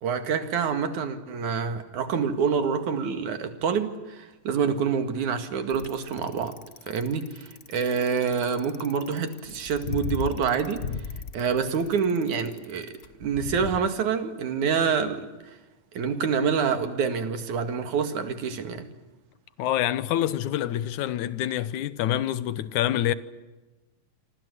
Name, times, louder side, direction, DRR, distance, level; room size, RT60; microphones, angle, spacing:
voice 1, 0.0-6.6 6.9-10.8 11.3-12.9 13.2-15.3 15.9-18.9, right 6 dB, 90° right, 3.5 m, -27 dB
Bicycle, 5.7-13.8, left 6 dB, 50° left, 0.9 m, -36 dB
voice 2, 19.6-23.1, left 12 dB, 85° left, 2.5 m, -26 dB
27.5 x 24.0 x 8.1 m
omnidirectional pair, 3.3 m